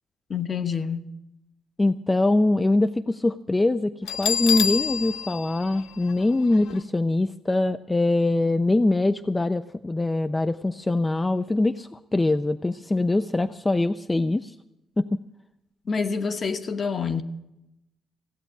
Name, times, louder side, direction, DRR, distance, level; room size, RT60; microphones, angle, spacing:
voice 1, 0.3-1.1 15.9-17.2, left 5 dB, 40° left, 1.0 m, -27 dB
voice 2, 1.8-14.6 15.0-15.2, left 2 dB, 15° left, 0.4 m, -23 dB
Bell, 4.1-6.8, left 8 dB, 80° left, 0.6 m, -28 dB
16.0 x 8.0 x 8.5 m
cardioid pair, 90°, 0 cm